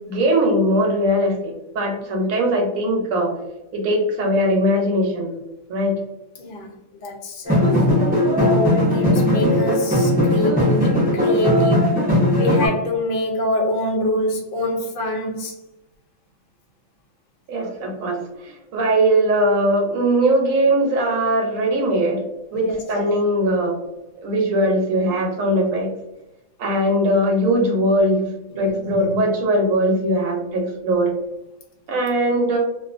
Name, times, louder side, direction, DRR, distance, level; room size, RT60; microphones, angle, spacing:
voice 1, 0.1-3.3 3.7-5.3 5.7-6.0 17.5-22.2 22.5-23.7 24.2-25.9 26.6-31.1 31.9-32.6, right 1 dB, 75° right, 1 dB, 1.0 m, -20 dB
voice 2, 6.4-6.7 6.9-11.9 12.3-15.5 22.5-22.8 28.5-28.7, left 1 dB, 65° left, 0 dB, 0.5 m, -25 dB
sound 1, 7.5-12.7, left 1 dB, 10° right, 0.4 m, -18 dB
2.4 x 2.4 x 2.4 m, 0.89 s
omnidirectional pair, 1.5 m